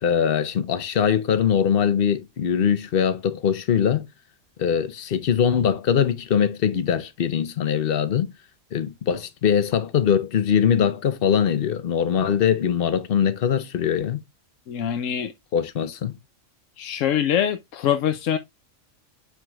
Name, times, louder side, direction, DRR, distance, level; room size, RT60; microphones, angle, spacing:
voice 1, 0.0-4.1 4.6-8.3 8.7-14.2 15.5-16.2, left 8 dB, 55° left, 0.9 m, -22 dB
voice 2, 14.7-15.3 16.8-18.4, left 9 dB, 90° left, 1.0 m, -24 dB
10.5 x 4.7 x 2.3 m
omnidirectional pair, 1.3 m